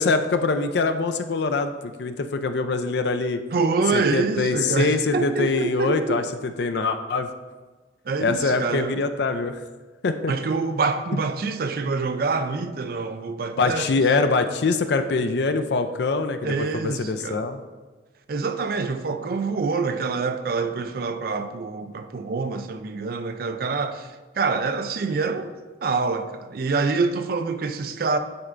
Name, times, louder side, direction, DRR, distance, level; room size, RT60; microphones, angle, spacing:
voice 1, 0.0-3.4 3.9-7.3 8.2-9.6 10.0-10.3 13.6-17.6, left 3 dB, 65° left, 0.4 m, -24 dB
voice 2, 3.5-6.2 8.1-9.0 10.3-13.9 16.4-17.4 18.3-25.5 25.8-28.2, right 4 dB, 50° right, 0.4 m, -26 dB
9.5 x 4.3 x 2.5 m
head